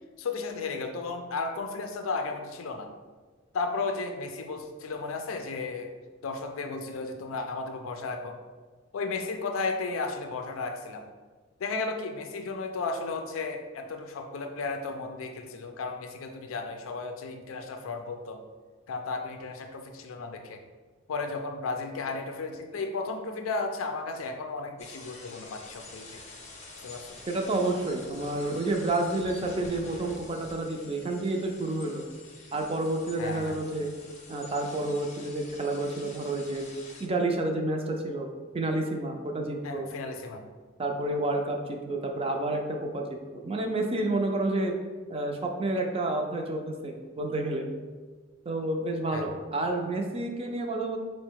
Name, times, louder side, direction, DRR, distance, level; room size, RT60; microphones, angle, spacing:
voice 1, 0.2-2.9 3.5-5.9 6.2-8.4 8.9-11.1 11.6-18.4 18.9-20.6 21.1-26.2 26.8-27.2 33.2-33.6 39.6-40.5 49.1-49.3, left 3 dB, 85° left, 5 dB, 0.4 m, -34 dB
sound 1, 24.8-37.1, left 2 dB, 35° left, 0.7 m, -47 dB
voice 2, 27.3-32.0 32.5-33.9 34.3-36.6 37.0-38.3 38.5-39.9 40.8-44.7 45.1-47.7 48.5-51.0, right 2 dB, 30° right, 3 dB, 0.4 m, -30 dB
4.8 x 2.1 x 4.5 m, 1.4 s
head